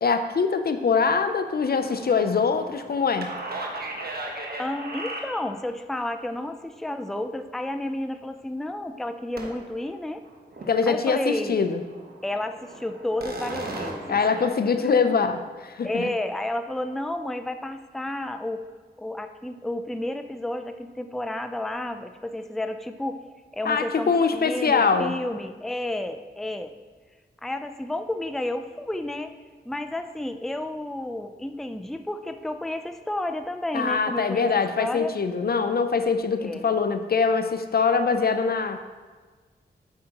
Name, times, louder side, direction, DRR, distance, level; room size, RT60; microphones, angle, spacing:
voice 1, 0.0-3.4 10.7-11.8 14.1-16.1 23.6-25.1 33.7-38.8, left 5 dB, 55° left, 9 dB, 0.5 m, -23 dB
sound 1, 1.8-5.7 9.4-9.8 10.2-10.8 11.1-11.2 11.6-14.5, right 2 dB, 55° right, 1.2 m, -37 dB
voice 2, 4.6-10.2 10.9-11.6 12.2-14.5 14.8-15.0 15.8-18.6 19.0-23.2 23.5-26.7 27.4-29.3 29.7-35.1 36.4-36.7, left 1 dB, ahead, 8 dB, 0.5 m, -31 dB
8.0 x 6.4 x 3.0 m, 1.4 s
cardioid pair, 40°, 19 cm